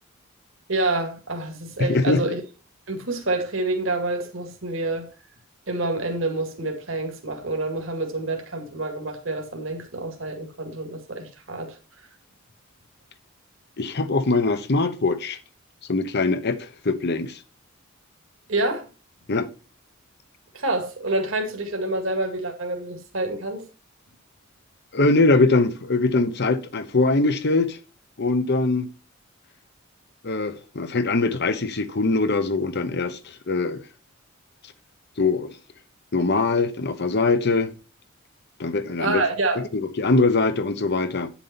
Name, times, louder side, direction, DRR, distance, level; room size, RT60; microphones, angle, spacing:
voice 1, 0.7-2.4 2.9-5.1 5.7-11.7 18.5-18.8 20.5-23.7 39.0-39.6, right 2 dB, 65° right, 2.1 m, -27 dB
voice 2, 1.8-2.3 13.8-15.4 15.9-17.4 19.3-19.5 24.9-27.8 28.2-28.9 30.2-33.8 35.2-35.5 36.1-37.7 38.6-39.2 39.6-41.3, left 3 dB, 55° left, 0.9 m, -22 dB
9.3 x 7.1 x 4.2 m
head